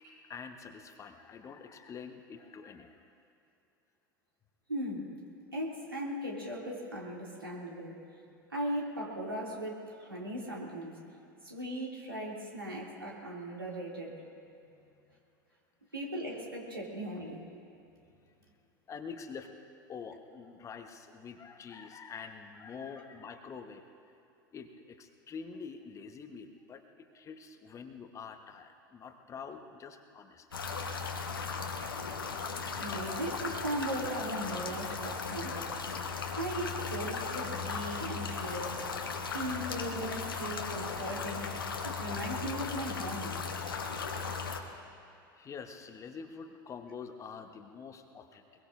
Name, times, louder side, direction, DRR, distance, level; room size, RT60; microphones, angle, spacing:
voice 1, 0.0-3.1 8.3-8.5 14.7-15.2 17.9-18.2 18.9-19.5 19.9-23.8 24.5-30.7 39.1-39.6 45.3-48.5, left 6 dB, 25° left, 6 dB, 1.2 m, -46 dB
voice 2, 4.7-5.1 5.5-8.0 8.5-11.0 11.4-14.2 15.9-17.4 32.8-35.7 36.3-38.8 39.3-41.6 41.8-43.4, right 1 dB, 85° right, -3 dB, 2.7 m, -38 dB
sound 1, 30.5-44.6, left 5 dB, 80° left, 1.3 m, -37 dB
22.5 x 21.5 x 2.6 m, 2.7 s
figure-of-eight pair, 80°, 12 cm